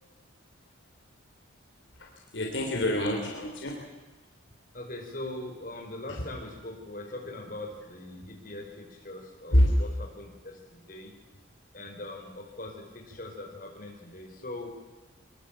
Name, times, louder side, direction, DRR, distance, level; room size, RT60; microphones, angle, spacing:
voice 1, 2.0-3.8 6.1-6.3 9.5-9.7, left 1 dB, 65° left, 1 dB, 3.3 m, -26 dB
voice 2, 4.7-11.1 11.7-14.7, left 1 dB, 45° left, 1 dB, 4.9 m, -41 dB
23.0 x 21.5 x 7.5 m, 1.2 s
head